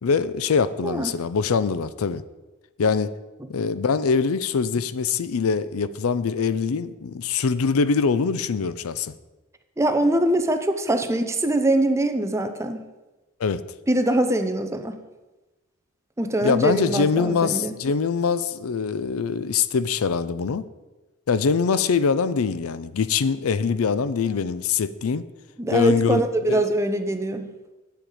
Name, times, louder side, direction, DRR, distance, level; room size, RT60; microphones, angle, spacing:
voice 1, 0.0-2.2 2.8-3.1 3.5-9.1 13.4-13.6 16.4-20.7 21.3-25.2 25.7-26.2 26.5-26.6, left 5 dB, 85° left, 15 dB, 0.5 m, -23 dB
voice 2, 9.8-12.8 13.9-15.0 16.2-17.7 25.6-27.5, right 1 dB, 15° right, 7 dB, 0.6 m, -23 dB
9.0 x 7.7 x 4.9 m, 1.1 s
head